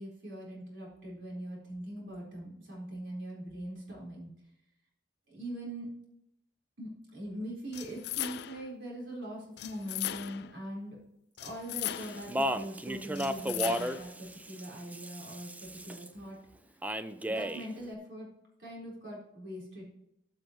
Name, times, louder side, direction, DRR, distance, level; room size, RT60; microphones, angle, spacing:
voice 1, 0.0-4.3 5.3-5.9 6.8-11.0 11.4-16.4 17.3-18.3 18.6-19.8, right 1 dB, 65° right, -4 dB, 4.1 m, -42 dB
sound 1, 7.7-8.7 9.6-10.5 11.4-12.4 13.1-14.1, left 13 dB, 55° left, 0.4 m, -38 dB
Speech, 11.9-16.1 16.8-17.7, equal, 10° right, 0.4 m, -34 dB
14.0 x 6.4 x 3.0 m, 0.79 s
head